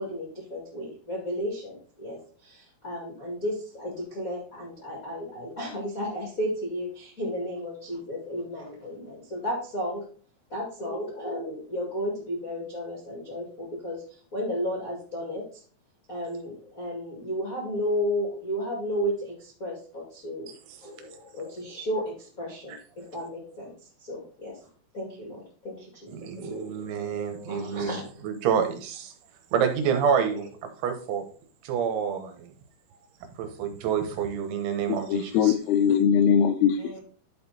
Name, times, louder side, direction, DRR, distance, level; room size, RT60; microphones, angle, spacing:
voice 1, 0.0-10.0 10.5-15.6 16.1-20.5 20.8-24.7 24.9-28.2 30.3-30.5 36.8-37.0, equal, 50° left, 1.0 m, -33 dB
voice 2, 26.1-28.0 28.2-29.1 29.5-30.5 30.8-31.3 31.6-32.5 33.4-35.6, right 7 dB, 80° right, 3.4 m, -28 dB
voice 3, 34.9-36.9, left 8 dB, 85° left, 3.2 m, -22 dB
11.0 x 4.4 x 4.1 m
omnidirectional pair, 5.6 m